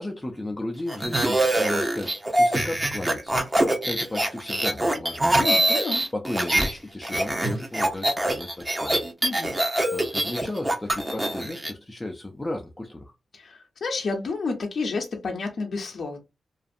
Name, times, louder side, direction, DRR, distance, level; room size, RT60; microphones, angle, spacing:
voice 1, 0.0-3.4 3.9-5.4 6.1-9.0 9.9-13.1, left 1 dB, 15° left, 0.4 m, -34 dB
sound 1, 0.9-6.7 7.0-11.7, right 1 dB, 20° right, 0.7 m, -24 dB
voice 2, 5.4-6.0 9.2-9.5 13.3-16.2, left 4 dB, 60° left, 0.6 m, -30 dB
2.5 x 2.4 x 2.5 m
cardioid pair, 90°, 0 cm